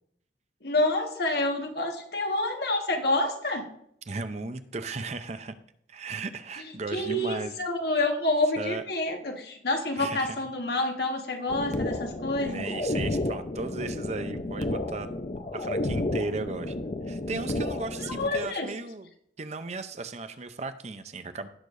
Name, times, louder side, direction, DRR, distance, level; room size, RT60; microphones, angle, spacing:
voice 1, 0.6-3.7 6.9-12.7 18.1-18.7, left 2 dB, 60° left, 3 dB, 1.6 m, -28 dB
voice 2, 4.1-5.5 5.9-7.6 8.6-8.8 10.0-10.3 12.4-15.1 15.5-16.7 17.1-19.1 19.4-21.5, right 3 dB, 40° right, 10 dB, 0.6 m, -36 dB
sound 1, 11.5-18.5, left 1 dB, 40° left, 0.7 m, -31 dB
17.0 x 6.7 x 2.6 m, 0.72 s
head